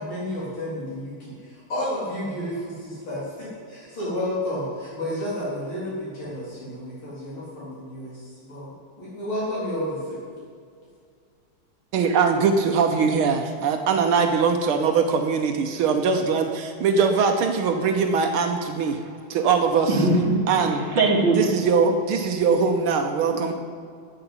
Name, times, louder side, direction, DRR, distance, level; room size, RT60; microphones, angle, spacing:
voice 1, 0.0-8.7 9.0-10.2, left 1 dB, 80° left, -8 dB, 4.8 m, -31 dB
voice 2, 11.9-19.0 19.3-19.9 20.5-20.8 21.4-23.5, right 5 dB, 85° right, 5 dB, 1.8 m, -21 dB
voice 3, 19.9-20.4 20.7-21.4 23.2-23.5, right 2 dB, 65° right, -1 dB, 3.1 m, -21 dB
12.0 x 8.0 x 9.8 m, 2.2 s
omnidirectional pair, 2.3 m